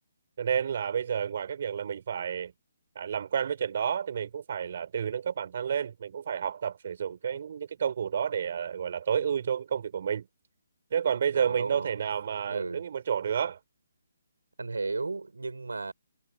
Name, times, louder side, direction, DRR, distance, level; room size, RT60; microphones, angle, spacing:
voice 1, 0.4-2.5 3.0-10.3 10.9-13.6, right 8 dB, 50° right, 5.7 m, -30 dB
voice 2, 11.3-12.0 12.4-12.8 14.6-15.9, right 3 dB, 85° right, 6.5 m, -34 dB
hypercardioid pair, 150°, 0 cm